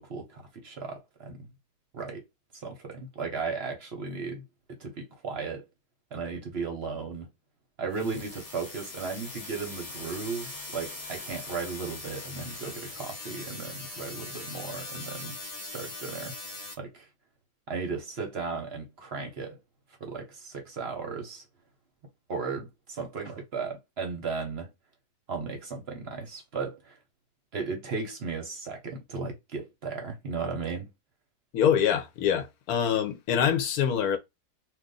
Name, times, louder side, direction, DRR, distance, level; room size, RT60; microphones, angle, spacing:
voice 1, 0.0-1.5 1.9-2.2 2.5-5.6 6.1-7.3 7.8-15.4 15.6-16.3 16.8-17.1 17.7-19.6 20.0-21.5 22.3-24.7 25.3-27.0 27.5-30.9, right 4 dB, 50° right, 0.9 m, -35 dB
sound 1, 7.9-16.7, left 2 dB, 35° left, 0.7 m, -41 dB
voice 2, 31.5-34.2, left 8 dB, 75° left, 1.2 m, -25 dB
2.6 x 2.6 x 3.7 m
omnidirectional pair, 1.6 m